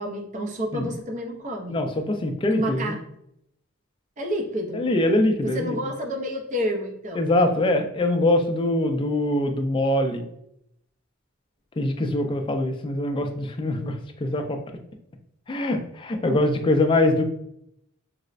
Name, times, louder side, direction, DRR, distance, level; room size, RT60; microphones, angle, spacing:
voice 1, 0.0-1.8 2.5-3.0 4.2-4.9 5.5-7.3, equal, 35° right, 2 dB, 0.5 m, -29 dB
voice 2, 1.7-2.9 4.7-5.8 7.1-10.2 11.8-14.6 15.5-17.2, left 1 dB, 25° left, 5 dB, 0.3 m, -23 dB
4.0 x 2.0 x 2.4 m, 0.75 s
head